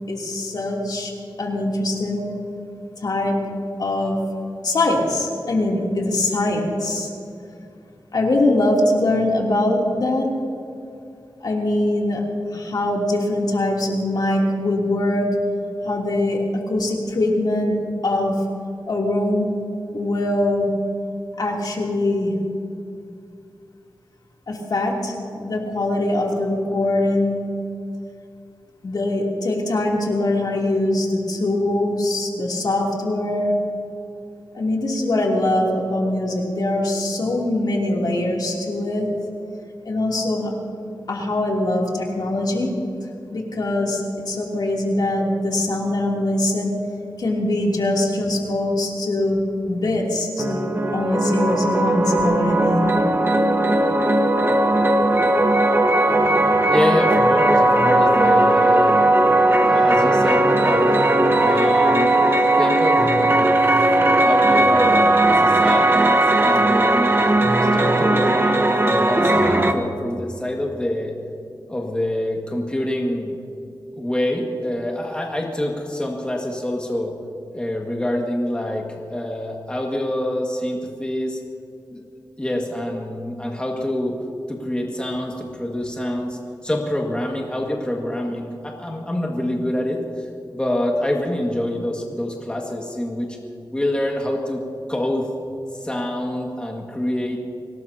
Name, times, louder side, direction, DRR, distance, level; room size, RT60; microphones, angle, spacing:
voice 1, 0.1-1.1 1.4-2.3 3.0-3.4 3.8-4.2 4.6-7.1 8.1-10.3 11.4-12.2 12.5-15.3 15.8-17.8 18.0-18.4 18.9-19.5 19.9-20.7 21.4-22.4 24.5-27.4 28.8-33.5 34.5-39.1 39.8-40.5 41.1-42.7 43.3-46.8 47.2-49.4 49.7-52.9, left 1 dB, 60° left, -2 dB, 3.1 m, -22 dB
sound 1, 50.4-69.7, right 1 dB, 30° right, 1.1 m, -17 dB
voice 2, 56.7-59.1 59.6-60.9 61.4-63.6 64.0-67.2 67.6-71.1 71.7-73.4 74.0-77.1 77.5-81.4 81.9-82.0 82.4-84.2 84.5-90.3 90.5-93.4 93.7-94.6 94.9-95.3 95.8-97.4, left 1 dB, 15° left, -1 dB, 1.9 m, -26 dB
25.0 x 18.5 x 2.9 m, 2.6 s
wide cardioid pair, 100°, 8 cm